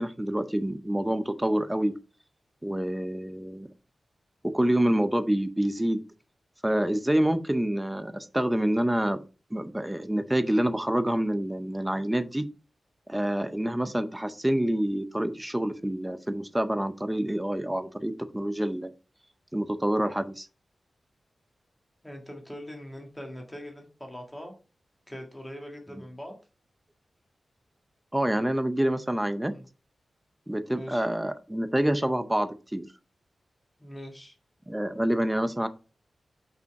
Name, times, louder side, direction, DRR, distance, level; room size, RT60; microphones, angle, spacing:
voice 1, 0.0-1.9 2.6-3.7 4.4-6.0 6.6-9.2 9.5-12.5 13.1-18.9 19.5-20.5 28.1-29.5 30.5-32.9 34.7-35.7, right 1 dB, 5° right, 11 dB, 0.6 m, -27 dB
voice 2, 22.0-24.5 25.1-26.3 29.5-29.6 30.7-31.1 33.8-34.3, equal, 10° left, 2 dB, 1.7 m, -42 dB
5.4 x 5.3 x 4.7 m, 0.34 s
wide cardioid pair, 180°, 0 cm